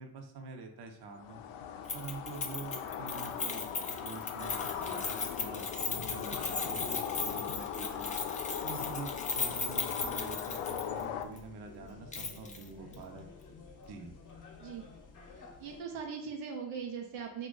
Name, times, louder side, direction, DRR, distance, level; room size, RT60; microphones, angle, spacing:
voice 1, 0.0-1.4 1.9-3.7 4.0-4.6 4.8-8.2 8.6-13.3 13.9-14.2, right 4 dB, 50° right, 3 dB, 0.8 m, -46 dB
sound 1, 1.1-11.3, left 9 dB, 75° left, 0.5 m, -39 dB
Keys jangling, 1.9-11.0 11.4-11.5 12.1-12.6 12.9-13.0, left 4 dB, 15° left, 0.4 m, -37 dB
sound 2, 4.4-15.8, left 3 dB, 40° left, 0.8 m, -51 dB
voice 2, 15.6-17.5, right 6 dB, 80° right, 1 dB, 0.8 m, -40 dB
2.8 x 2.4 x 3.8 m, 0.80 s
supercardioid pair, 65°, 50 cm